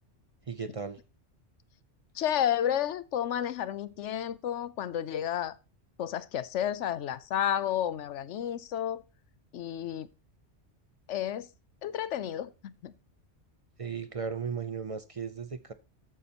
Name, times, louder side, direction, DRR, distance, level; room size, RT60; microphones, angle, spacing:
voice 1, 0.5-1.0 13.8-15.7, right 6 dB, 40° right, 0.5 m, -36 dB
voice 2, 2.1-5.5 6.0-9.0 9.5-10.1 11.1-11.5 11.8-12.9, left 10 dB, 75° left, 1.0 m, -31 dB
13.5 x 9.5 x 2.9 m
omnidirectional pair, 1.2 m